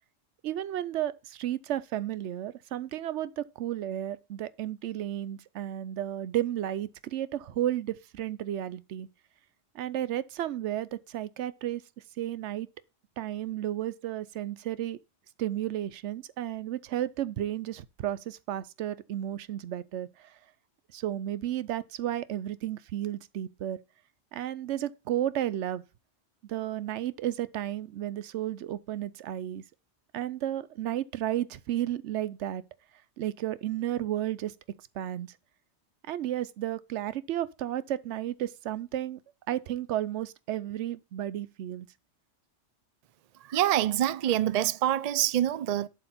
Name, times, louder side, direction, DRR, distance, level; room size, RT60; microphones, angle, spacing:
voice 1, 0.4-9.1 9.7-11.8 12.2-12.7 13.2-15.0 15.4-20.3 20.9-23.8 24.3-25.8 26.4-29.6 30.1-32.6 33.2-34.5 35.0-35.3 36.1-39.2 39.5-41.9, right 12 dB, 90° right, 0.9 m, -33 dB
voice 2, 43.5-45.9, right 12 dB, 60° right, 0.4 m, -26 dB
7.7 x 6.4 x 4.2 m
omnidirectional pair, 1.1 m